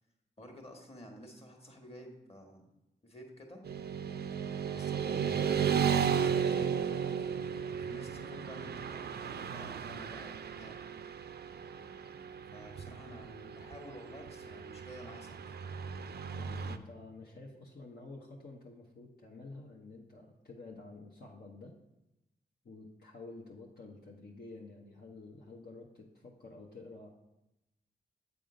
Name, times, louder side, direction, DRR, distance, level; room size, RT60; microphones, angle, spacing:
voice 1, 0.4-2.7 3.0-3.6 4.7-5.7 7.1-10.9 12.5-15.6, equal, 35° left, 2 dB, 1.6 m, -51 dB
Motorcycle / Traffic noise roadway noise, 3.6-16.8, right 7 dB, 65° right, 0.4 m, -35 dB
voice 2, 16.3-21.8 22.6-27.1, left 3 dB, 60° left, -3 dB, 0.9 m, -50 dB
8.0 x 3.6 x 5.0 m, 0.93 s
cardioid pair, 45°, 18 cm